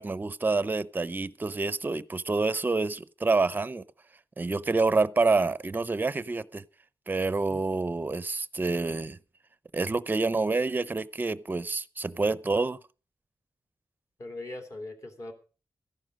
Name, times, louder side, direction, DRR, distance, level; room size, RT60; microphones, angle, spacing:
voice 1, 0.0-3.8 4.4-6.6 7.1-9.2 9.7-12.8, right 3 dB, 25° right, 0.6 m, -27 dB
voice 2, 14.2-15.3, left 2 dB, 45° left, 2.9 m, -40 dB
14.5 x 11.5 x 5.3 m
wide cardioid pair, 145°, 8 cm